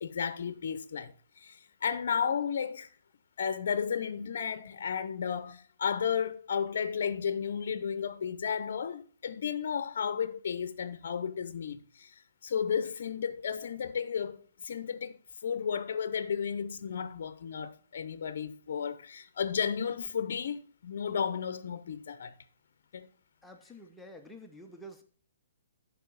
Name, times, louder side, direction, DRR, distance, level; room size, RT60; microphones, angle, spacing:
voice 1, 0.0-2.9 3.4-12.1 12.4-15.2 15.4-22.4 22.9-23.1, left 7 dB, 60° left, 0.6 m, -33 dB
voice 2, 23.4-25.0, equal, 5° left, 0.6 m, -49 dB
11.5 x 4.7 x 3.9 m
hypercardioid pair, 165°, 0 cm